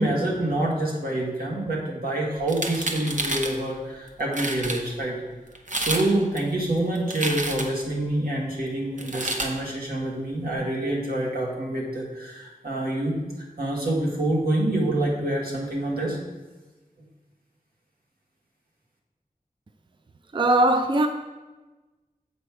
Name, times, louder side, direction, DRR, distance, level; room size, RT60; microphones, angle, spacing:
voice 1, 0.0-5.2 5.8-13.2 13.6-16.2, right 1 dB, 85° right, 1.8 m, -26 dB
sound 1, 2.4-3.6 4.1-4.2 4.3-4.8 5.6-6.1 6.4-7.9 9.0-9.5, right 2 dB, 55° right, 0.9 m, -29 dB
voice 2, 20.3-21.1, right 1 dB, 35° right, 0.4 m, -19 dB
7.6 x 5.2 x 4.8 m
wide cardioid pair, 55°, 15 cm